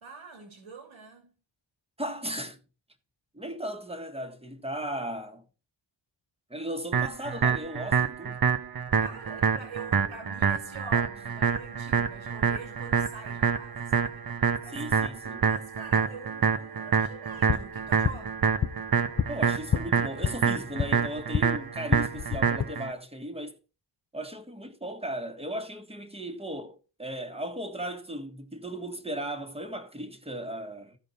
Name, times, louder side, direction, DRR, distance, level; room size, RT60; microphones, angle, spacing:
voice 1, 0.0-1.3 9.0-15.1 15.4-18.4 22.1-22.5, right 4 dB, 85° right, 3.0 m, -45 dB
voice 2, 2.0-2.6 3.3-5.4 6.5-8.4 14.7-15.5 19.3-23.6 24.1-31.0, right 1 dB, 10° right, 1.5 m, -36 dB
sound 1, 6.9-22.9, right 6 dB, 50° right, 1.0 m, -27 dB
sound 2, 17.3-21.5 21.8-22.7, left 8 dB, 40° left, 0.5 m, -31 dB
15.0 x 5.1 x 4.0 m
wide cardioid pair, 100°, 48 cm